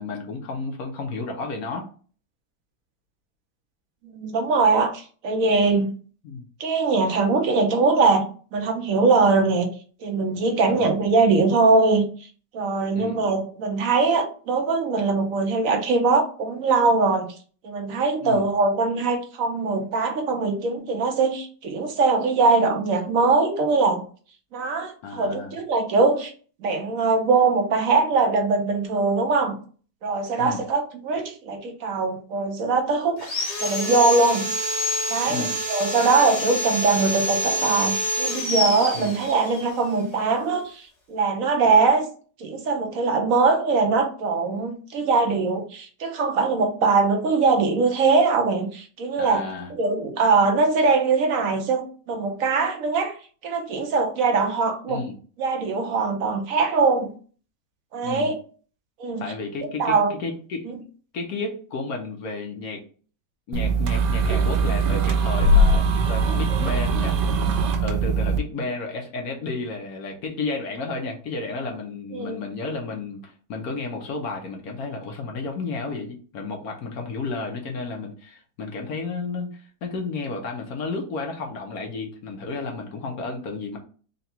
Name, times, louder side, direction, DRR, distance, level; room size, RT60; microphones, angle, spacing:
voice 1, 0.0-1.9 6.2-6.4 10.7-10.9 12.9-13.2 18.2-18.4 25.0-25.5 30.4-30.6 35.3-35.5 38.9-39.2 49.2-49.7 54.9-55.2 58.0-58.3 59.2-60.7 61.1-62.8 63.5-67.2 67.8-83.8, left 3 dB, 65° left, 2 dB, 1.1 m, -32 dB
voice 2, 4.1-5.9 6.6-8.2 8.5-9.7 10.0-12.0 12.5-17.3 17.6-24.0 24.5-26.3 26.6-29.6 30.0-33.2 33.6-34.5 35.1-42.1 42.4-49.4 49.7-53.1 53.4-55.0 55.4-57.1 57.9-58.4 59.0-59.2 59.8-60.1 60.7-60.8 72.1-72.4, right 4 dB, 60° right, 3 dB, 1.0 m, -22 dB
Sawing, 33.2-39.7, left 1 dB, 85° left, 1.9 m, -27 dB
sound 1, 63.5-68.4, right 2 dB, 80° right, 1.2 m, -21 dB
3.8 x 2.3 x 4.2 m, 0.41 s
omnidirectional pair, 1.9 m